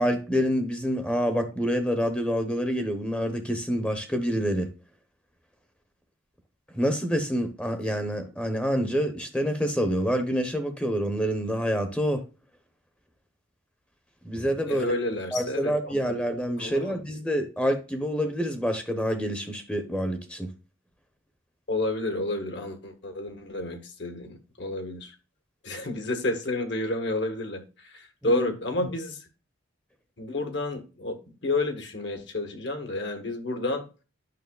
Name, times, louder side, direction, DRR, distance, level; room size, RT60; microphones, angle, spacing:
voice 1, 0.0-4.7 6.7-12.2 14.2-14.9 15.3-20.5 28.2-28.5, equal, 5° left, 0.8 m, -27 dB
voice 2, 14.7-16.2 16.6-17.0 21.7-25.1 25.6-29.2 30.2-31.2 31.4-33.8, left 2 dB, 60° left, 1.4 m, -30 dB
9.3 x 6.1 x 2.3 m
head